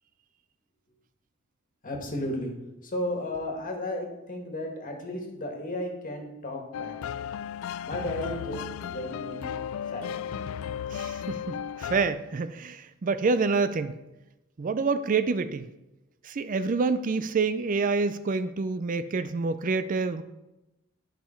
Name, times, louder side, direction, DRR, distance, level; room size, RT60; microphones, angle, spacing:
voice 1, 1.8-7.0 7.8-9.5 9.9-10.4, left 1 dB, 40° left, 2 dB, 1.7 m, -34 dB
sound 1, 6.7-12.1, left 8 dB, 90° left, 0.3 m, -35 dB
voice 2, 10.9-14.0 14.6-15.7 16.2-20.2, right 4 dB, 40° right, 12 dB, 0.4 m, -27 dB
11.0 x 5.7 x 4.4 m, 0.98 s
head